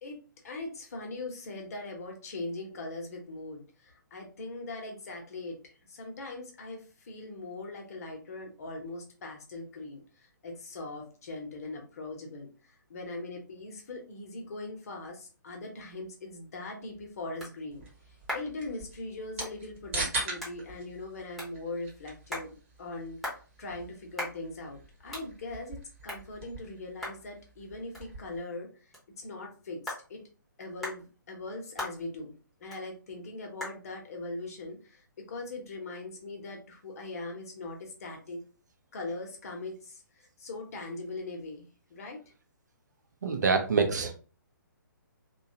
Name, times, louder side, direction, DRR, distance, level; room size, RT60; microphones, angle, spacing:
voice 1, 0.0-17.8 18.3-23.2 23.6-25.8 26.0-28.7 29.2-30.2 30.6-32.3 32.6-38.4 38.9-42.3, left 2 dB, 45° left, 2 dB, 0.8 m, -41 dB
sound 1, 16.5-35.8, left 1 dB, ahead, 0.7 m, -45 dB
sound 2, 17.7-28.4, right 2 dB, 40° right, 1.1 m, -42 dB
voice 2, 43.2-44.1, right 4 dB, 55° right, 5 dB, 0.6 m, -26 dB
2.7 x 2.3 x 2.7 m, 0.36 s
figure-of-eight pair, 130°, 11 cm